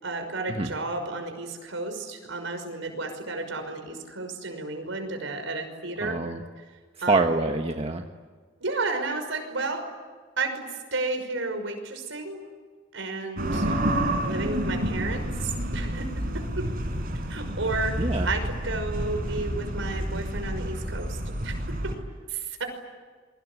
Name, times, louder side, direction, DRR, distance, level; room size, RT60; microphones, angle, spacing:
voice 1, 0.0-6.2 7.0-7.4 8.6-9.8 10.4-12.4 12.9-13.7 14.2-16.7 17.3-21.5 22.3-22.6, right 3 dB, 80° right, 6 dB, 5.8 m, -32 dB
voice 2, 6.0-6.4 7.1-8.0 13.5-13.8 18.0-18.3, right 3 dB, 30° right, 4 dB, 1.4 m, -26 dB
sound 1, 13.4-22.0, right 1 dB, 50° right, 5.7 m, -29 dB
28.5 x 24.0 x 8.3 m, 1.5 s
head